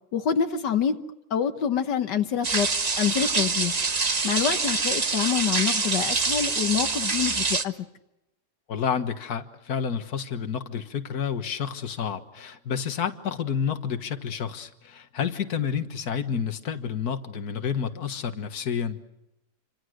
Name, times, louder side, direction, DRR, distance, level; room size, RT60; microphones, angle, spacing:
voice 1, 0.1-1.0 1.3-2.7 3.0-3.8 4.2-7.7, left 8 dB, 90° left, 7 dB, 1.8 m, -26 dB
sound 1, 2.4-7.6, right 4 dB, 30° right, 0.9 m, -25 dB
voice 2, 8.7-19.0, left 7 dB, 65° left, 9 dB, 2.0 m, -30 dB
29.0 x 26.0 x 6.4 m, 0.89 s
omnidirectional pair, 1.8 m